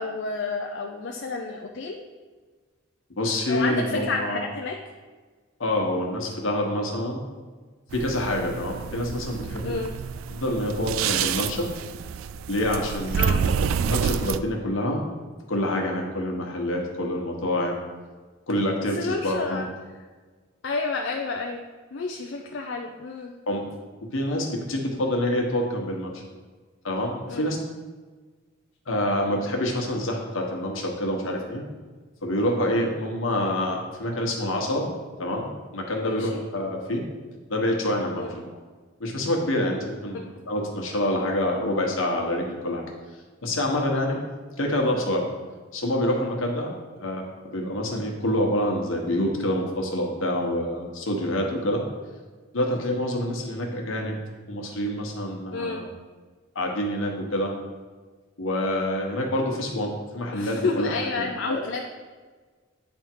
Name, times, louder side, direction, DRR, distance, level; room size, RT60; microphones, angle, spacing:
voice 1, 0.0-2.0 3.5-4.8 9.6-9.9 13.1-13.4 18.9-19.7 20.6-21.6 21.9-23.3 27.3-27.5 36.0-36.4 38.2-38.3 40.1-40.3 55.5-55.8 60.3-61.8, left 3 dB, 60° left, 2 dB, 0.5 m, -30 dB
voice 2, 3.2-4.4 5.6-7.2 7.9-9.7 10.3-11.7 12.5-13.6 13.9-15.0 15.5-17.8 18.5-19.6 23.5-23.6 24.0-26.1 26.8-27.6 28.9-31.6 32.2-34.9 35.2-37.0 37.5-38.2 39.0-42.8 43.4-44.2 44.6-45.2 45.7-46.7 47.0-47.3 47.5-51.8 52.5-54.2 54.5-55.9 56.5-57.5 58.4-61.6, left 1 dB, 80° left, 1 dB, 1.2 m, -27 dB
sound 1, 7.9-14.4, right 7 dB, 85° right, 0.3 m, -28 dB
9.6 x 3.6 x 4.5 m, 1.4 s
head